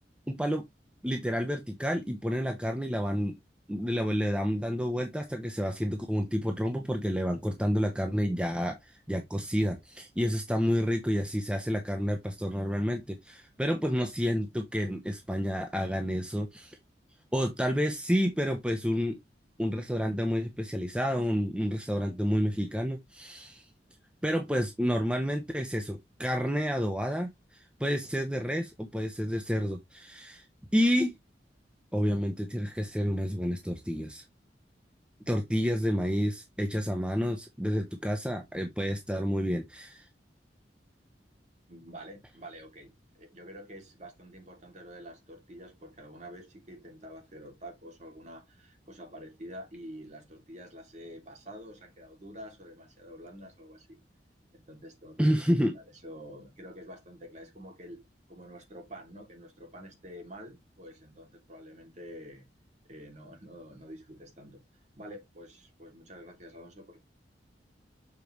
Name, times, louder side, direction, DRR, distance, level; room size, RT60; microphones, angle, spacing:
voice 1, 0.3-0.6 1.0-3.4 3.7-16.8 17.3-19.2 19.6-23.7 24.2-30.4 30.7-31.1 31.9-34.2 35.3-40.1 55.2-55.7, equal, 5° right, 0.8 m, -29 dB
voice 2, 41.7-54.0 54.5-55.5 55.7-58.0 58.3-62.5 62.9-64.6 65.0-67.0, equal, 40° right, 2.7 m, -47 dB
7.2 x 4.9 x 3.1 m
head